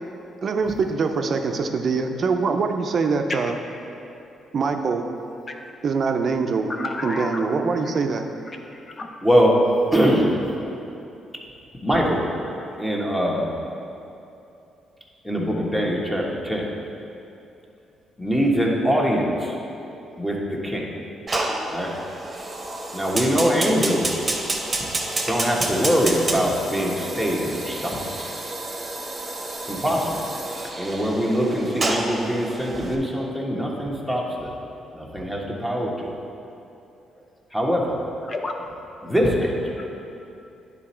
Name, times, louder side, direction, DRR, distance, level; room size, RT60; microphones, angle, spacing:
voice 1, 0.4-3.5 4.5-5.0 5.8-6.7 7.0-8.2, right 4 dB, 50° right, 5 dB, 0.6 m, -23 dB
voice 2, 6.7-7.5 7.9-8.0 8.5-9.1 12.6-12.7 38.2-38.7 39.8-39.9, left 3 dB, 35° left, 3 dB, 0.7 m, -32 dB
voice 3, 9.2-9.6 9.9-10.3 11.8-12.2 12.8-13.5 15.2-16.7 18.2-19.6 20.2-20.9 21.7-21.9 22.9-24.2 25.3-28.0 29.7-30.2 30.8-34.5 34.9-35.9 37.5-37.9 39.0-39.8, equal, 5° left, -3 dB, 1.3 m, -22 dB
Fire, 21.3-32.9, right 2 dB, 30° right, 1.0 m, -29 dB
10.0 x 4.1 x 4.4 m, 2.8 s
cardioid pair, 90°, 0 cm